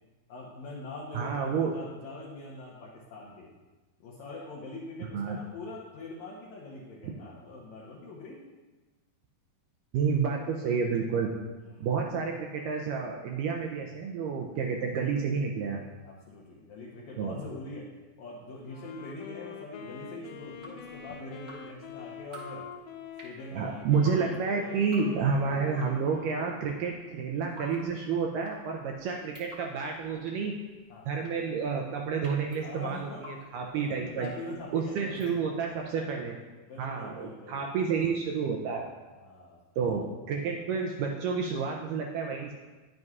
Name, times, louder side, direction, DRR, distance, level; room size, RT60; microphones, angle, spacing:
voice 1, 0.3-3.5 4.0-8.4 11.7-11.9 15.7-17.9 18.2-22.7 23.2-23.9 30.9-31.1 32.6-33.2 33.7-36.2 36.7-37.7 39.1-39.6, left 2 dB, 75° left, -4 dB, 1.7 m, -43 dB
voice 2, 1.1-1.7 5.1-5.4 9.9-11.3 11.8-15.8 17.2-17.4 23.5-30.5 31.1-34.3 34.7-36.4 36.8-38.9 39.8-42.5, right 5 dB, 80° right, 1 dB, 1.9 m, -30 dB
Wind instrument woodwind instrument, 18.7-27.3, left 7 dB, 90° left, 2.7 m, -46 dB
Drip, 20.4-35.8, equal, 40° right, 1.3 m, -52 dB
10.5 x 7.7 x 2.4 m, 1.2 s
omnidirectional pair, 4.4 m